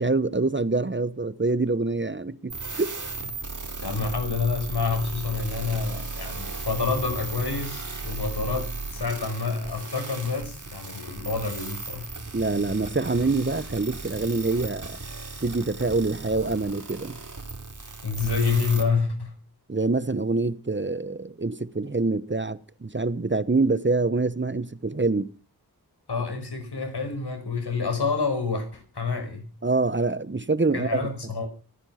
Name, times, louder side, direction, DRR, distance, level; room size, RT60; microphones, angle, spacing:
voice 1, 0.0-2.9 12.3-15.0 15.4-17.2 19.7-25.3 29.6-31.1, right 3 dB, 30° right, 1.0 m, -25 dB
sound 1, 2.5-18.8, right 3 dB, 50° right, 4.0 m, -36 dB
voice 2, 3.8-12.1 18.0-19.3 26.1-29.5 30.7-31.5, left 4 dB, 80° left, 5.4 m, -28 dB
24.0 x 10.0 x 5.7 m
wide cardioid pair, 55°, 39 cm